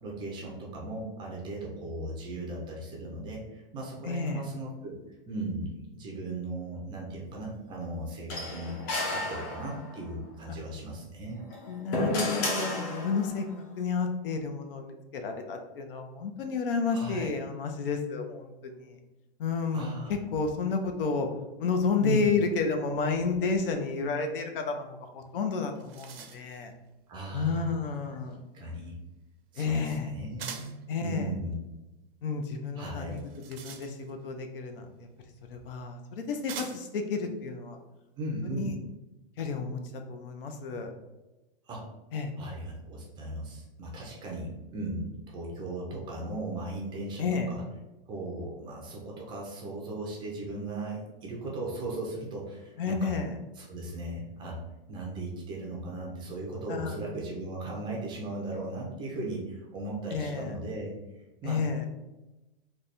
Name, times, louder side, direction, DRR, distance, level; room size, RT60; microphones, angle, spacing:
voice 1, 0.0-8.8 9.1-11.4 16.9-17.3 19.7-20.1 22.0-22.3 27.1-27.8 28.5-29.0 29.5-30.8 31.0-31.6 32.8-33.2 38.2-38.7 41.7-41.9 42.4-47.6 48.1-53.2 53.6-54.6 54.9-61.9, right 2 dB, 15° right, -2 dB, 0.5 m, -37 dB
voice 2, 4.0-4.4 10.5-10.6 11.7-13.5 13.8-19.0 19.4-19.8 20.1-21.3 21.6-26.7 27.3-28.4 29.6-30.1 30.9-31.3 32.2-33.2 33.5-35.1 35.5-37.8 38.6-38.7 39.4-40.9 42.1-42.3 47.2-47.5 52.8-53.3 56.7-56.9 60.1-60.5 61.4-61.9, left 5 dB, 70° left, 5 dB, 0.7 m, -31 dB
sound 1, 8.3-10.0 11.4-13.4, left 2 dB, 30° left, 0.7 m, -32 dB
sound 2, 25.3-25.4 25.6-26.6 30.4-30.8 33.1-34.3 35.4-35.5 36.5-37.0, right 7 dB, 80° right, 0.7 m, -43 dB
3.3 x 2.3 x 4.0 m, 1.0 s
hypercardioid pair, 155°, 29 cm